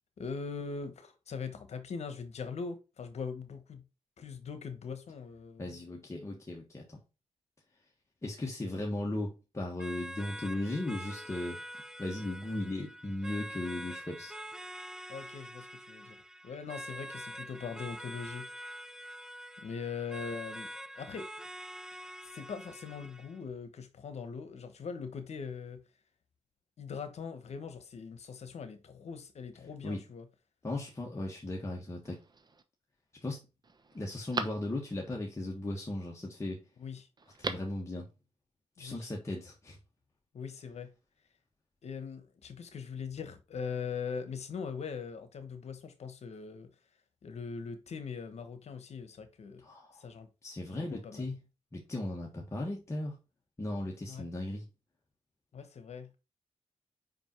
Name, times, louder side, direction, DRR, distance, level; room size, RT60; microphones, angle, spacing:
voice 1, 0.2-3.8 4.2-5.7 15.1-16.2 16.4-18.5 19.6-20.7 21.0-21.3 22.3-25.8 26.8-30.2 36.8-37.1 38.8-39.1 40.3-40.9 41.8-46.7 47.2-49.6 49.9-50.3 50.7-51.2 54.1-54.2 55.5-56.2, left 5 dB, 70° left, 1.2 m, -41 dB
voice 2, 5.6-7.0 8.2-11.6 12.0-14.3 29.8-30.1 30.6-32.2 33.2-33.4 33.9-36.6 37.4-38.1 38.8-39.8 49.6-50.0 50.4-51.4 51.7-53.2 53.6-54.7, left 1 dB, 25° left, 1.7 m, -37 dB
sound 1, 9.8-23.4, equal, 5° right, 0.5 m, -45 dB
Telephone, 32.0-32.6 33.2-33.3 33.6-35.2 37.2-37.8 38.1-38.2, right 3 dB, 35° right, 1.0 m, -40 dB
5.4 x 5.2 x 4.6 m
cardioid pair, 85°, 12 cm